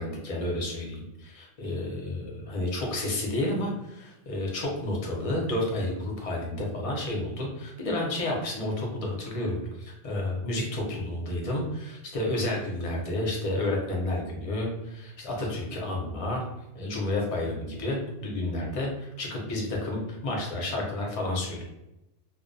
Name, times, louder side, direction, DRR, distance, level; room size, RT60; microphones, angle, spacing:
voice 1, 0.0-16.4 16.7-21.6, left 1 dB, 40° left, -1 dB, 0.6 m, -31 dB
2.4 x 2.2 x 2.5 m, 0.91 s
omnidirectional pair, 1.2 m